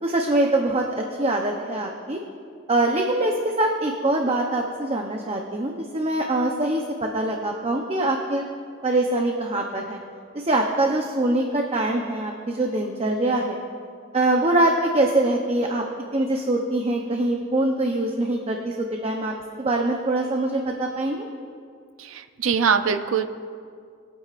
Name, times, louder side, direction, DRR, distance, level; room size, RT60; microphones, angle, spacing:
voice 1, 0.0-2.2 2.7-8.4 8.8-10.0 10.3-13.6 14.1-15.8 16.1-21.3, right 2 dB, 30° right, 1 dB, 0.8 m, -23 dB
voice 2, 22.0-23.3, right 6 dB, 75° right, 9 dB, 0.6 m, -22 dB
22.5 x 9.1 x 2.5 m, 2.3 s
head